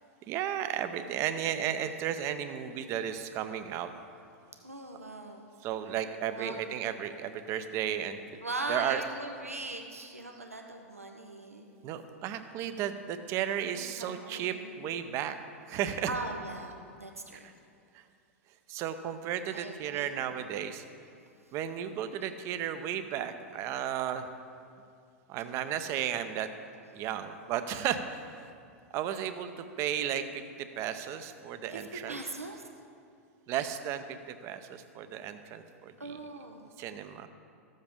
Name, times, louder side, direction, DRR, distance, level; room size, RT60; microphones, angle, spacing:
voice 1, 0.3-3.9 5.6-8.2 8.7-9.0 11.8-15.4 15.7-16.2 17.4-17.5 17.9-18.0 18.7-20.8 21.5-24.3 25.3-26.5 26.9-28.5 28.9-32.2 33.5-36.2 36.8-37.3, right 10 dB, 40° right, 10 dB, 0.6 m, -34 dB
voice 2, 4.6-5.5 6.2-6.6 8.4-11.7 13.6-14.8 16.1-17.5 19.5-20.1 21.4-21.5 31.7-32.6 36.0-36.7, right 2 dB, 90° right, 3 dB, 0.7 m, -40 dB
14.0 x 7.5 x 3.6 m, 2.4 s
figure-of-eight pair, 95°, 7 cm